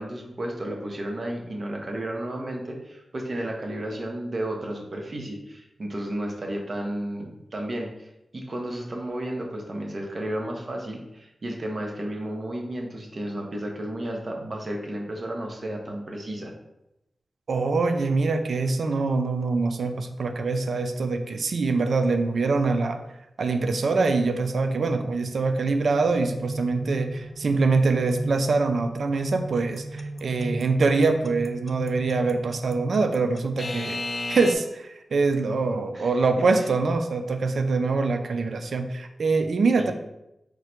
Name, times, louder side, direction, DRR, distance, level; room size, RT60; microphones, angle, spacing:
voice 1, 0.0-8.1 8.3-16.5 35.9-36.1 39.8-39.9, right 1 dB, 55° right, 1 dB, 0.8 m, -32 dB
voice 2, 17.5-23.0 23.4-34.0 34.3-39.9, right 3 dB, 80° right, 7 dB, 0.3 m, -24 dB
sound 1, 25.6-33.5, right 2 dB, 75° left, 0.7 m, -37 dB
Alarm / Clock, 29.8-34.5, left 2 dB, 50° left, 0.4 m, -32 dB
3.7 x 2.1 x 4.4 m, 0.88 s
cardioid pair, 55°, 0 cm